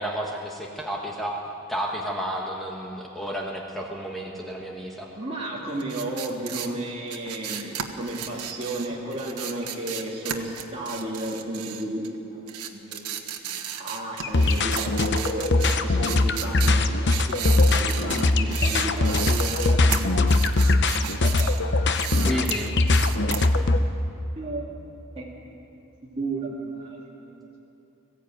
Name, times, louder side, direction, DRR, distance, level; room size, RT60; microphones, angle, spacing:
voice 1, 0.0-1.4 1.7-5.1 22.2-22.7, equal, ahead, -2 dB, 1.4 m, -31 dB
voice 2, 5.2-15.4 15.8-20.5 20.9-21.5 22.1-22.6 23.2-23.7 24.4-24.7 25.2-25.5 26.2-27.6, right 1 dB, 25° right, -5 dB, 2.4 m, -34 dB
sound 1, 5.8-12.2 12.5-21.6 21.9-23.5, right 9 dB, 85° right, 1.4 m, -34 dB
sound 2, 14.2-23.8, left 2 dB, 50° left, 0.8 m, -21 dB
20.0 x 15.0 x 9.1 m, 2.9 s
head